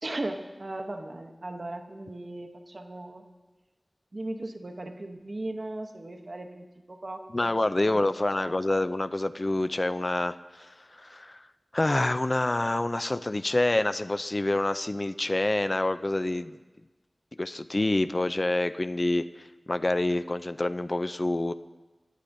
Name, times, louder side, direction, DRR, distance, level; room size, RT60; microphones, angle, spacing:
voice 1, 0.0-3.2 4.1-8.9, right 2 dB, 55° right, 5 dB, 0.8 m, -38 dB
voice 2, 7.3-11.4 11.7-16.6 17.4-21.5, left 2 dB, 45° left, 12 dB, 0.3 m, -27 dB
17.5 x 10.0 x 2.6 m, 1.2 s
wide cardioid pair, 45°, 0 cm